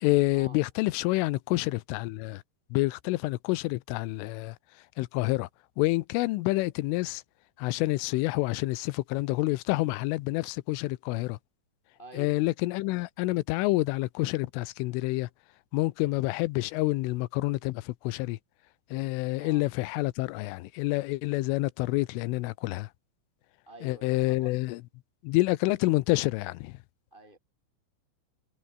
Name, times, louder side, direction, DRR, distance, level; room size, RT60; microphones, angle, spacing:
voice 1, 0.0-2.4 2.7-4.6 5.0-5.5 5.8-7.2 7.6-11.4 12.2-15.3 15.7-18.4 18.9-22.9 23.8-24.8 25.2-26.8, left 21 dB, 85° left, 3.3 m, -28 dB
voice 2, 12.0-12.4 19.4-19.7 23.7-24.6 27.1-27.4, right 1 dB, 10° left, 3.5 m, -48 dB
omnidirectional pair, 5.6 m